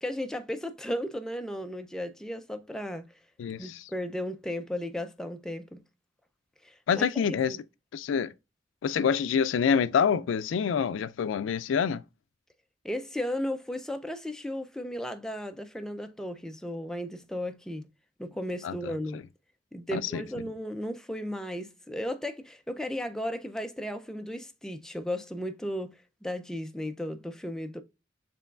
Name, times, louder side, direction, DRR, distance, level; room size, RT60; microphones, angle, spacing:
voice 1, 0.0-3.1 3.6-5.8 6.6-7.6 12.8-17.9 18.2-19.2 19.7-27.8, left 1 dB, 5° left, 0.3 m, -35 dB
voice 2, 3.4-3.9 6.9-7.6 7.9-8.3 8.8-12.0 18.6-19.2 19.9-20.2, left 7 dB, 85° left, 0.3 m, -27 dB
6.8 x 3.0 x 2.3 m
head